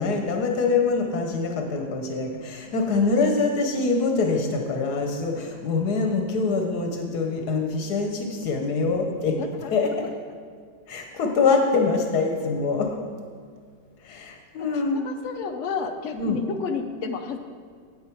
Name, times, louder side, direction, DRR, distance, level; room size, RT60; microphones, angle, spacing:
voice 1, 0.0-9.4 9.7-10.1 10.9-13.0 14.0-15.0 16.1-16.4, left 4 dB, 85° left, 3 dB, 1.5 m, -24 dB
voice 2, 15.0-17.4, left 5 dB, 55° left, 5 dB, 1.0 m, -30 dB
9.4 x 8.6 x 4.6 m, 2.1 s
omnidirectional pair, 1.7 m